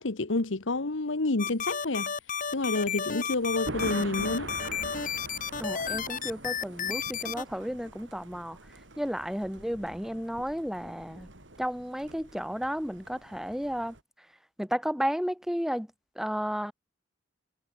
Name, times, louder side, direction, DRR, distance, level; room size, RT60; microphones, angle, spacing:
voice 1, 0.0-2.1 2.5-4.5, left 2 dB, 80° left, 1.3 m, -29 dB
sound 1, 1.4-7.4, left 7 dB, 45° left, 3.6 m, -32 dB
Thunder, 2.5-14.0, right 2 dB, 75° right, 5.1 m, -44 dB
voice 2, 5.6-8.6 9.0-11.3 11.6-14.0 14.6-15.9 16.2-16.7, equal, ahead, 2.8 m, -32 dB
head